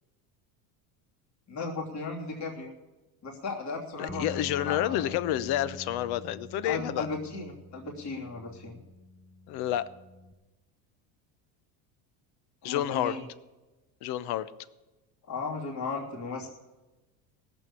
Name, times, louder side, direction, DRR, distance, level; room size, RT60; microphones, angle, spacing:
voice 1, 1.5-2.7 3.2-5.1 6.6-8.8 12.6-13.2 15.3-16.5, left 3 dB, 40° left, -1 dB, 2.9 m, -36 dB
voice 2, 4.0-7.1 9.5-9.9 12.6-13.2 14.0-14.5, left 12 dB, 60° left, 16 dB, 0.9 m, -29 dB
sound 1, 4.1-10.3, left 2 dB, 10° left, 0.8 m, -46 dB
17.5 x 7.2 x 8.4 m, 1.1 s
supercardioid pair, 120°, 44 cm